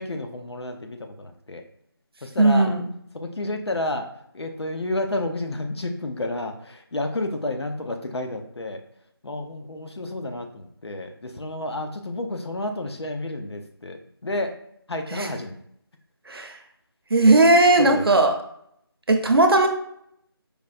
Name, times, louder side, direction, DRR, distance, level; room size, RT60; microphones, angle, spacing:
voice 1, 0.0-1.6 2.2-2.7 3.1-4.1 4.3-8.8 9.2-14.0 14.2-14.6 14.9-15.5 17.8-18.1, left 2 dB, 85° left, 5 dB, 0.7 m, -30 dB
voice 2, 2.4-2.9 15.1-15.3 16.3-16.6 17.1-18.4 19.1-19.7, right 2 dB, 65° right, 4 dB, 0.6 m, -17 dB
4.9 x 2.2 x 2.4 m, 0.71 s
figure-of-eight pair, 175°, 13 cm